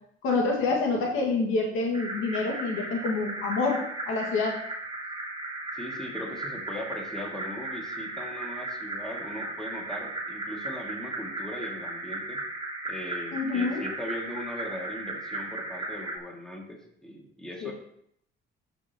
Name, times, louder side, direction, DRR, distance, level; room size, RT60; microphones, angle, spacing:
voice 1, 0.2-4.6 13.3-13.9 17.6-17.7, left 3 dB, 85° left, -1 dB, 1.8 m, -27 dB
sound 1, 1.9-16.2, right 2 dB, 25° right, 1.3 m, -36 dB
voice 2, 5.7-12.4 12.8-17.7, equal, 5° left, -1 dB, 2.1 m, -39 dB
13.5 x 5.5 x 2.9 m, 0.70 s
cardioid pair, 90°, 20 cm